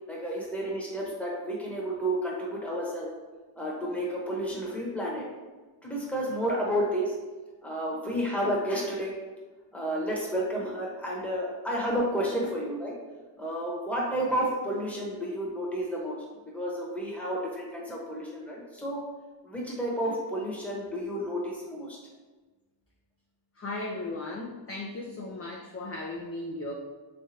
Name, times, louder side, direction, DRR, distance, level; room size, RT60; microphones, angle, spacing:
voice 1, 0.1-3.1 3.6-5.2 5.8-7.1 7.6-9.1 9.7-12.9 13.4-16.2 16.5-19.0 19.4-22.0, equal, 5° left, -4 dB, 1.0 m, -31 dB
voice 2, 23.6-26.7, left 2 dB, 30° left, -2 dB, 0.4 m, -36 dB
3.5 x 3.3 x 2.7 m, 1.3 s
wide cardioid pair, 90°, 46 cm